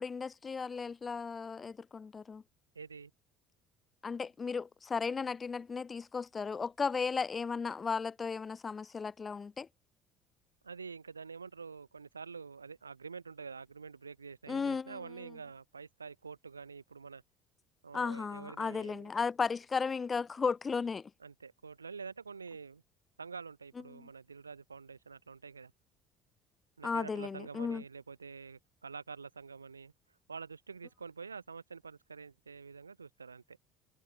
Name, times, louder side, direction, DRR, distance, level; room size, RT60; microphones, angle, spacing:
voice 1, 0.0-2.4 4.0-9.7 14.5-15.0 17.9-21.1 24.0-24.1 26.8-27.8, left 5 dB, 30° left, 1.9 m, -35 dB
voice 2, 2.7-3.1 10.6-17.2 17.8-19.1 21.2-22.8 23.2-25.7 26.8-29.9 30.3-33.6, right 5 dB, 85° right, 3.3 m, -47 dB
figure-of-eight pair, 55°, 0 cm